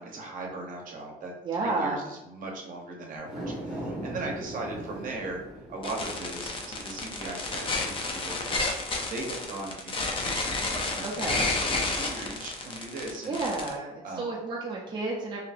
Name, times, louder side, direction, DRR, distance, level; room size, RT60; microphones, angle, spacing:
voice 1, 0.0-1.3 1.6-5.4 5.7-13.4 14.0-14.3, right 2 dB, 55° right, 0 dB, 0.8 m, -38 dB
voice 2, 1.4-2.0 11.0-11.5 13.3-15.4, right 3 dB, 25° right, -3 dB, 0.4 m, -31 dB
sound 1, 3.2-9.7 10.1-10.2, right 1 dB, ahead, 1.2 m, -41 dB
sound 2, 5.8-13.7, left 3 dB, 30° left, 0.5 m, -31 dB
2.8 x 2.5 x 2.5 m, 0.98 s
cardioid pair, 110°, 17 cm